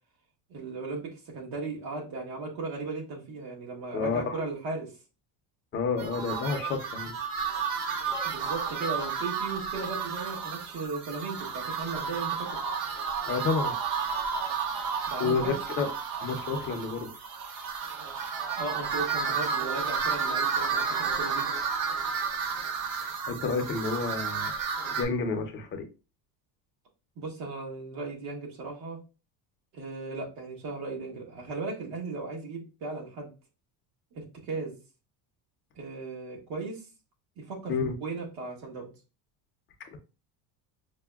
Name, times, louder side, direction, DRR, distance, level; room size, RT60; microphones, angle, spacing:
voice 1, 0.5-4.9 8.2-12.6 15.1-15.6 18.5-21.5 27.2-29.0 29.7-33.3 34.1-34.8 35.7-36.8 37.4-38.9, right 3 dB, 60° right, 0 dB, 1.5 m, -36 dB
voice 2, 3.9-4.5 5.7-7.1 13.3-13.7 15.2-15.9 16.2-17.1 23.0-24.5 24.9-25.8 37.7-37.9, left 4 dB, 30° left, 4 dB, 0.5 m, -30 dB
sound 1, 6.0-25.0, right 6 dB, 90° right, 1.0 m, -32 dB
5.7 x 2.2 x 2.3 m, 0.31 s
cardioid pair, 165°, 44 cm